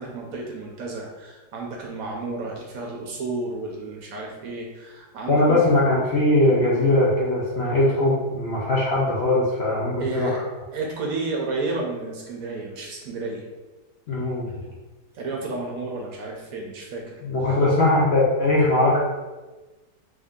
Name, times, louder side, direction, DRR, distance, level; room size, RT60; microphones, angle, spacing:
voice 1, 0.0-5.6 10.0-10.4 10.7-13.5 15.1-17.2, right 3 dB, 65° right, -1 dB, 1.0 m, -31 dB
voice 2, 5.3-10.4 14.1-14.5 17.2-19.0, left 2 dB, 55° left, -6 dB, 0.8 m, -20 dB
3.4 x 2.6 x 3.6 m, 1.2 s
omnidirectional pair, 1.7 m